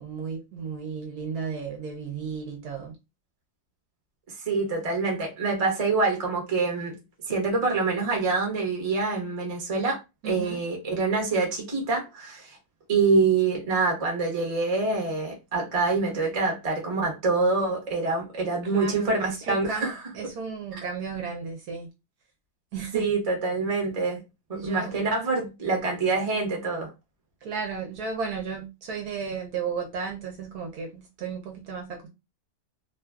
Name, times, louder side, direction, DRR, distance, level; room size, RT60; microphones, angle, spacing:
voice 1, 0.0-2.9 10.2-10.6 18.7-21.9 22.7-23.1 24.5-24.9 27.4-32.1, right 6 dB, 70° right, 1.0 m, -34 dB
voice 2, 4.5-6.9 7.3-10.0 10.2-12.5 12.9-20.0 20.7-20.8 22.9-24.2 24.5-26.9, right 3 dB, 35° right, 0.5 m, -26 dB
2.9 x 2.3 x 2.3 m
omnidirectional pair, 2.0 m